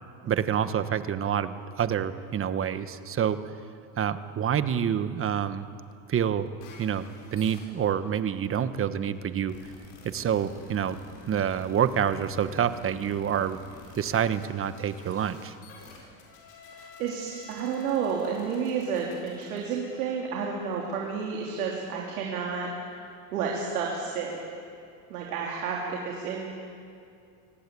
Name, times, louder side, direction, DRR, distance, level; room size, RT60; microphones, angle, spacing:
voice 1, 0.3-3.4 4.0-5.6 6.1-6.5 6.8-9.6 10.0-11.0 11.3-13.6 13.9-15.5, right 8 dB, 30° right, 12 dB, 1.3 m, -27 dB
sound 1, 6.6-20.2, left 4 dB, 75° left, 7.5 m, -50 dB
voice 2, 16.7-22.7 23.3-24.4 25.1-26.5, right 6 dB, 85° right, -2 dB, 3.8 m, -31 dB
24.0 x 18.0 x 8.5 m, 2.4 s
supercardioid pair, 110°, 43 cm